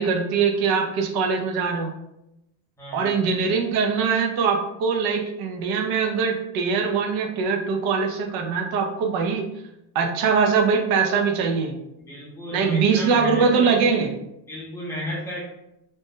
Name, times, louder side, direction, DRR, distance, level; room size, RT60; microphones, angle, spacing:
voice 1, 0.0-1.9 2.9-9.5 9.9-11.8 12.5-14.1, right 5 dB, 55° right, 3 dB, 0.5 m, -22 dB
voice 2, 2.8-3.2 12.0-13.8 14.5-15.4, left 1 dB, 5° left, -6 dB, 0.6 m, -34 dB
2.6 x 2.1 x 3.5 m, 0.86 s
cardioid pair, 175°, 46 cm